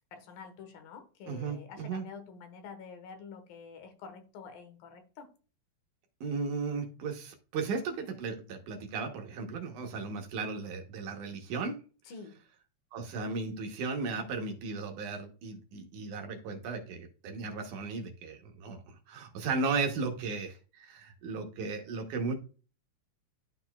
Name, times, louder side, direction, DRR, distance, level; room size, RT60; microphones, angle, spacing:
voice 1, 0.1-5.3 12.0-12.4, left 5 dB, 80° left, 2.9 m, -48 dB
voice 2, 1.3-2.0 6.2-11.8 12.9-22.4, right 4 dB, 70° right, 2.3 m, -35 dB
12.0 x 4.2 x 2.3 m
omnidirectional pair, 4.1 m